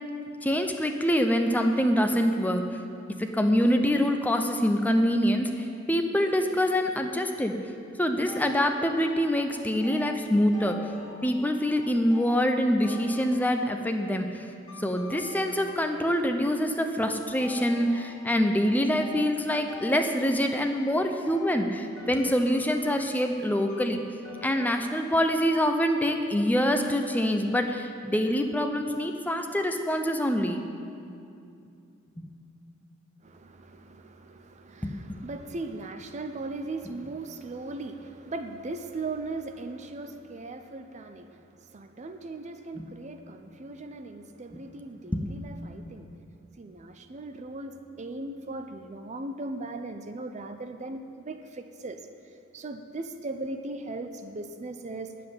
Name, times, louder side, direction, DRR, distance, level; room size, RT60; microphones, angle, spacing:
voice 1, 0.4-2.7 3.2-7.5 8.0-10.8 11.2-14.3 14.8-24.0 24.4-30.6 32.2-32.3 34.8-34.9 42.8-42.9 45.1-45.3, equal, 10° left, 5 dB, 0.6 m, -25 dB
sound 1, 8.2-14.0 14.7-16.3 17.4-24.7, left 4 dB, 25° left, 3.2 m, -46 dB
voice 2, 33.2-46.1 46.6-52.0 52.5-55.1, right 2 dB, 35° right, 7 dB, 0.5 m, -38 dB
9.7 x 7.7 x 8.7 m, 2.5 s
head